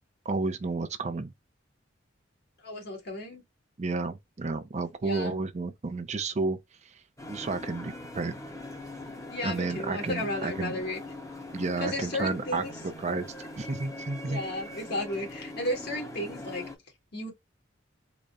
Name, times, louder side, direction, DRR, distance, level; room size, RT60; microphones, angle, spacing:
voice 1, 0.3-1.3 3.8-6.6 6.8-7.0 7.3-8.4 9.4-10.8 11.5-12.6 13.0-13.3 13.6-14.4 14.7-14.8, right 3 dB, 35° right, 0.5 m, -31 dB
voice 2, 2.6-3.4 5.0-5.4 9.3-11.0 11.8-12.7 14.3-16.6 17.1-17.3, left 1 dB, 60° left, 1.7 m, -34 dB
sound 1, 7.2-16.8, left 2 dB, 15° left, 0.9 m, -42 dB
3.9 x 2.1 x 3.5 m
head